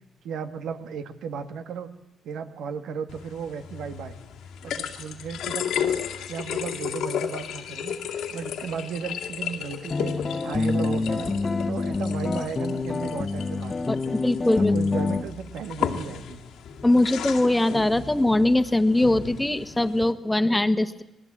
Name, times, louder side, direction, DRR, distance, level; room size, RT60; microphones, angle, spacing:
voice 1, 0.2-1.9 2.2-4.2 4.6-5.9 6.3-10.1 10.4-11.3 11.7-14.1 14.6-16.4, right 6 dB, 85° right, 9 dB, 1.8 m, -35 dB
sound 1, 3.1-20.1, left 8 dB, 90° left, 2.2 m, -34 dB
sound 2, 9.9-15.2, left 3 dB, 30° left, 1.2 m, -26 dB
voice 2, 13.9-14.8 16.8-21.0, left 1 dB, 10° left, 12 dB, 1.3 m, -22 dB
27.0 x 19.5 x 8.8 m, 0.89 s
cardioid pair, 90°, 0 cm